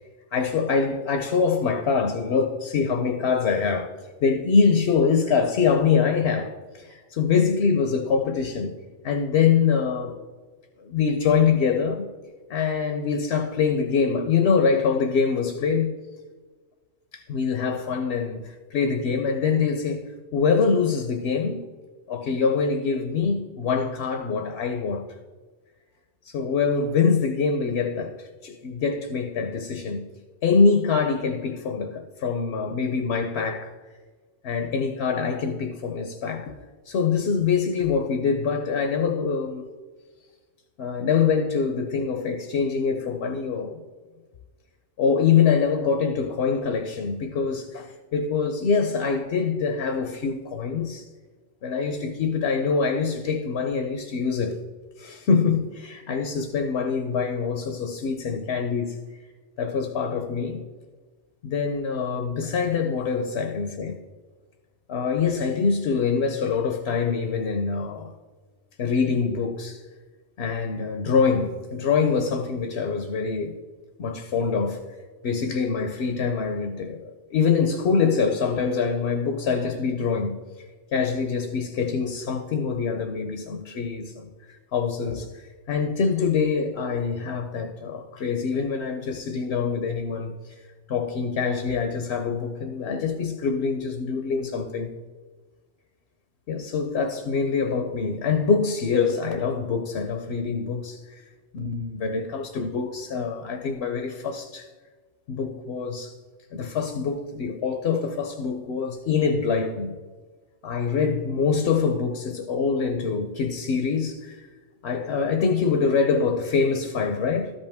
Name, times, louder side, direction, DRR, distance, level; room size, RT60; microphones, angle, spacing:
voice 1, 0.3-8.7 9.0-10.2 10.8-12.1 12.5-15.9 17.1-20.0 20.3-21.6 22.1-25.1 26.2-30.1 30.4-33.7 34.4-36.6 36.8-39.6 40.8-43.8 45.0-51.1 51.6-54.6 55.0-59.0 59.6-60.6 61.4-64.0 64.9-68.1 68.8-69.8 70.4-73.5 74.0-74.8 75.2-90.6 90.9-94.9 96.5-101.2 101.5-104.7 105.3-106.2 106.5-109.9 110.6-114.5 114.8-117.5, left 5 dB, 65° left, 0.9 m, -24 dB
13.0 x 5.5 x 3.5 m
omnidirectional pair, 1.2 m